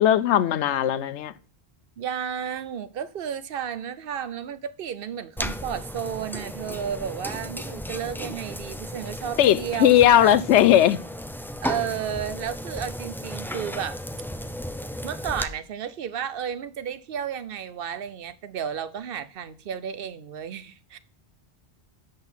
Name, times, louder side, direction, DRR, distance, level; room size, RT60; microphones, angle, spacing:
voice 1, 0.0-1.3 9.4-11.0, left 11 dB, 85° left, 0.9 m, -18 dB
voice 2, 2.0-10.4 11.6-14.0 15.0-21.0, right 8 dB, 60° right, 0.9 m, -32 dB
sound 1, 5.4-15.4, equal, 5° left, 0.4 m, -35 dB
10.5 x 6.2 x 5.6 m
omnidirectional pair, 1.1 m